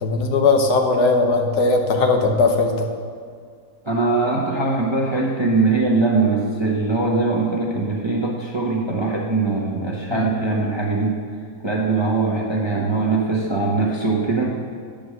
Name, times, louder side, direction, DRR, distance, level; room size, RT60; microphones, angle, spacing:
voice 1, 0.0-2.9 10.1-10.3, left 3 dB, 85° left, 4 dB, 1.5 m, -18 dB
voice 2, 3.9-11.2 11.6-14.5, right 3 dB, 20° right, -3 dB, 0.8 m, -21 dB
9.7 x 5.1 x 6.3 m, 2.1 s
omnidirectional pair, 1.7 m